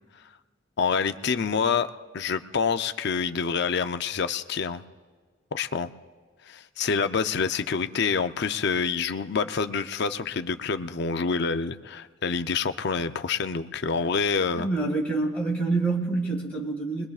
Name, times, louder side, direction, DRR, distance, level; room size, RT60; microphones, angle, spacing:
voice 1, 0.8-1.9 2.1-4.8 5.5-5.9 6.5-14.7, left 5 dB, 60° left, 10 dB, 0.5 m, -27 dB
voice 2, 14.6-17.1, right 3 dB, 5° left, -4 dB, 1.9 m, -26 dB
27.0 x 21.5 x 2.4 m, 1.5 s
head